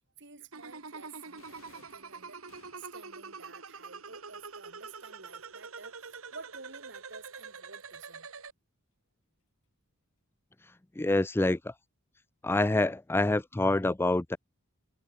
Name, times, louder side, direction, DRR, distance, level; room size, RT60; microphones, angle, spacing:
voice 1, 0.2-2.4 2.7-8.3, right 4 dB, 60° right, 5.8 m, -51 dB
sound 1, 0.5-8.5, right 5 dB, 85° right, 2.4 m, -45 dB
sound 2, 1.4-3.1, left 5 dB, 80° left, 7.6 m, -60 dB
voice 2, 11.0-11.7 12.4-14.4, left 2 dB, 10° left, 0.4 m, -26 dB
head